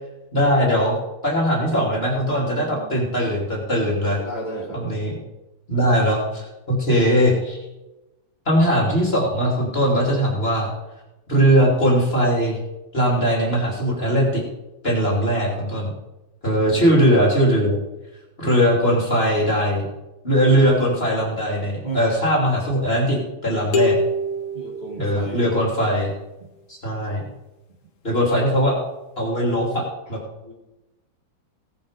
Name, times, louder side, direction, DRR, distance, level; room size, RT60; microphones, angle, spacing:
voice 1, 0.3-0.9 1.2-4.2 4.7-5.1 5.7-7.6 8.5-10.7 11.3-12.6 12.9-14.4 14.8-15.9 16.4-17.8 18.4-19.9 20.2-24.0 25.0-26.1 26.7-27.2 28.0-28.8 29.2-29.8 30.1-30.2, equal, 30° left, -2 dB, 3.0 m, -20 dB
voice 2, 2.4-3.0 3.8-5.1 5.7-6.0 16.7-16.8 21.8-22.0 24.5-25.5 30.4-30.5, right 2 dB, 20° right, -3 dB, 2.6 m, -35 dB
sound 1, 23.7-25.6, left 2 dB, 85° left, 2.2 m, -24 dB
17.0 x 8.5 x 5.1 m, 1.0 s
omnidirectional pair, 2.2 m